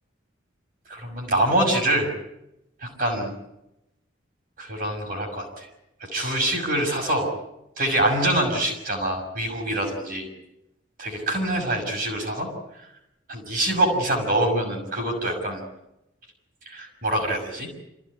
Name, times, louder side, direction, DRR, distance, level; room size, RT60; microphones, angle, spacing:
voice 1, 0.9-2.1 2.8-3.3 4.6-5.7 6.0-7.3 7.8-10.3 11.0-12.5 12.7-12.9 13.3-15.6 16.7-17.7, right 1 dB, 45° right, 0 dB, 6.1 m, -25 dB
28.0 x 16.0 x 9.8 m, 0.88 s
head